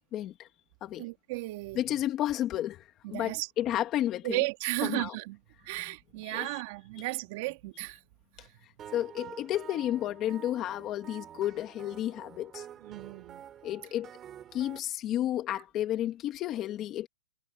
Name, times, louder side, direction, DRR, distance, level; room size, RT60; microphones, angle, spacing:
voice 1, 0.1-0.5 0.8-1.0 1.8-4.4 4.8-5.1 6.2-6.5 8.4-8.5 8.9-12.7 13.6-14.1 14.5-17.1, left 12 dB, 20° left, 2.0 m, -32 dB
voice 2, 1.0-1.8 3.0-3.5 4.2-8.0 8.4-8.5 12.8-13.4, right 23 dB, 35° right, 3.0 m, -35 dB
sound 1, 8.8-14.8, right 10 dB, 15° right, 3.2 m, -48 dB
hypercardioid pair, 165°, 0 cm